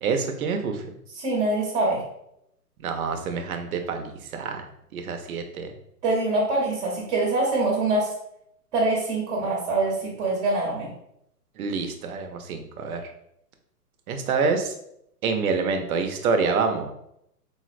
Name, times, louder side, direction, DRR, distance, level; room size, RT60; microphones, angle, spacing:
voice 1, 0.0-0.9 2.8-4.7 4.9-5.7 11.6-13.1 14.1-14.7 15.2-16.9, right 4 dB, 65° right, 5 dB, 0.7 m, -27 dB
voice 2, 1.2-2.0 6.0-8.1 8.7-10.9, right 2 dB, 30° right, -3 dB, 0.8 m, -24 dB
3.9 x 2.1 x 2.4 m, 0.76 s
hypercardioid pair, 140°, 47 cm